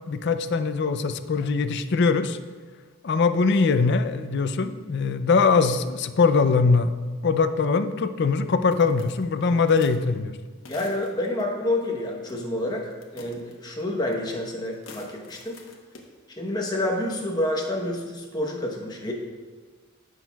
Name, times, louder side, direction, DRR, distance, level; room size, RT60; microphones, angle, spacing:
voice 1, 0.1-2.4 3.0-6.9 7.2-10.4, left 4 dB, 55° left, 10 dB, 0.4 m, -22 dB
sound 1, 8.7-10.0 10.6-11.4 12.3-12.6 12.9-14.4 14.7-16.1 16.9-17.2, left 3 dB, 75° left, 1.1 m, -47 dB
voice 2, 10.7-15.6 16.3-19.1, left 1 dB, 20° left, 0 dB, 1.0 m, -28 dB
14.5 x 6.2 x 2.3 m, 1.4 s
head